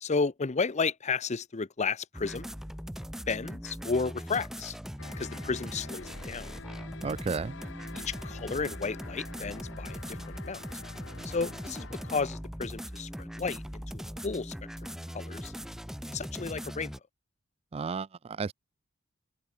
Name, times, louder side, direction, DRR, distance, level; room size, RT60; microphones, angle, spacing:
voice 1, 0.0-2.5 3.3-4.8 5.2-6.5 7.9-10.6 11.2-14.5 14.8-15.5 16.1-16.9, left 4 dB, 35° left, 0.6 m, -33 dB
sound 1, 2.1-17.0, equal, ahead, 3.3 m, -40 dB
sound 2, 5.0-12.2, left 4 dB, 65° left, 1.3 m, -48 dB
voice 2, 7.0-7.5 17.7-18.5, right 4 dB, 30° right, 0.4 m, -33 dB
open air
head